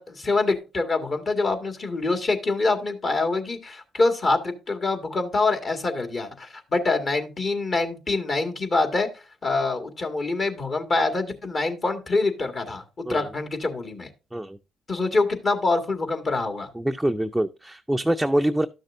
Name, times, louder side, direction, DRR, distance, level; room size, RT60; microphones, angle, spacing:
voice 1, 0.0-14.1 14.9-16.7, left 3 dB, 45° left, 1.9 m, -25 dB
voice 2, 16.7-18.7, right 1 dB, 5° right, 0.5 m, -25 dB
12.5 x 6.3 x 2.6 m
hypercardioid pair, 55°, 0 cm